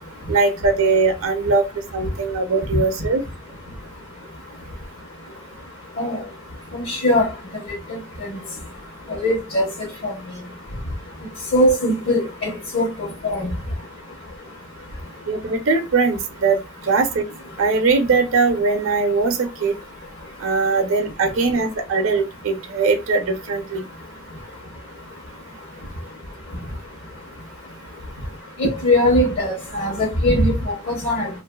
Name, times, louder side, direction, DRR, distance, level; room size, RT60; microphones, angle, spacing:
voice 1, 0.3-1.7 1.9-3.2 15.3-16.6 16.9-17.2 17.6-19.7 20.4-23.8, right 4 dB, 70° right, 0.6 m, -20 dB
voice 2, 6.7-7.3 8.2-8.3 9.1-9.7 10.0-10.1 11.5-12.9 13.2-13.5 28.6-31.3, left 1 dB, 60° left, 1.0 m, -20 dB
2.8 x 2.5 x 2.2 m
head